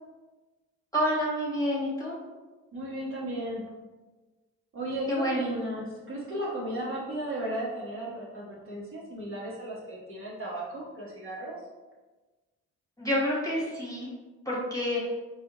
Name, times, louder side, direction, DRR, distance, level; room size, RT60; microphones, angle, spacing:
voice 1, 0.9-2.1 5.1-5.6 13.0-14.1 14.4-15.0, equal, 10° left, -6 dB, 1.5 m, -28 dB
voice 2, 2.7-3.6 4.7-11.6, right 1 dB, 40° right, -6 dB, 1.3 m, -35 dB
4.0 x 2.4 x 3.0 m, 1.2 s
supercardioid pair, 60°, 33 cm